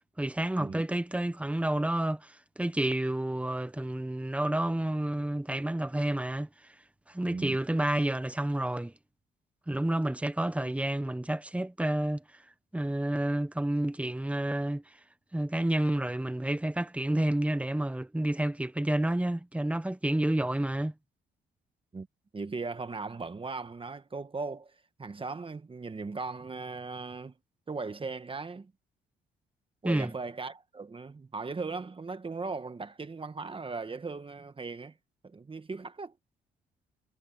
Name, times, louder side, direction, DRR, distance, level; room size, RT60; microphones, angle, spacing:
voice 1, 0.2-6.5 7.1-8.9 9.7-12.2 12.7-14.8 15.3-20.9 29.8-30.1, right 1 dB, 5° right, 1.0 m, -29 dB
voice 2, 7.2-7.6 21.9-22.1 22.3-27.3 27.7-28.7 29.8-35.0 35.2-36.1, right 4 dB, 25° right, 1.4 m, -38 dB
cardioid pair, 90°, 20 cm